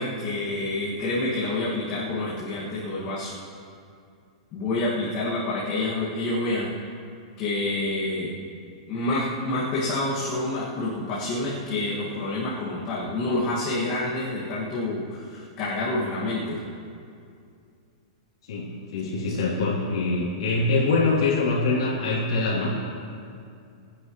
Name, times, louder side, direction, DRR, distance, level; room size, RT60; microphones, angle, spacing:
voice 1, 0.0-3.3 4.5-6.8 7.4-8.4 8.9-16.6 19.2-19.4, left 2 dB, 25° left, -7 dB, 2.0 m, -28 dB
voice 2, 18.5-22.9, left 3 dB, 60° left, -6 dB, 3.1 m, -24 dB
26.0 x 9.9 x 3.1 m, 2.4 s
supercardioid pair, 180°, 3 cm